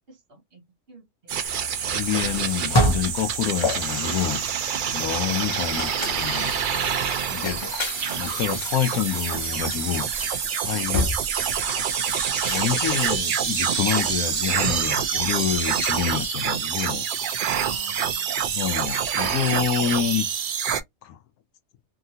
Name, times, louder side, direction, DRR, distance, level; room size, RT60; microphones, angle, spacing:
voice 1, 0.1-1.7 5.3-5.4 11.9-12.1 17.4-18.3, right 4 dB, 45° right, 1.1 m, -49 dB
sound 1, 1.3-20.8, right 8 dB, 75° right, 0.4 m, -26 dB
sound 2, 1.4-16.1, left 1 dB, 35° left, 0.5 m, -32 dB
voice 2, 1.9-4.4 4.9-6.5 7.3-7.7 8.2-11.1 12.5-17.4 18.5-20.3 21.0-21.2, left 10 dB, 85° left, 1.1 m, -28 dB
2.8 x 2.8 x 2.7 m
omnidirectional pair, 1.5 m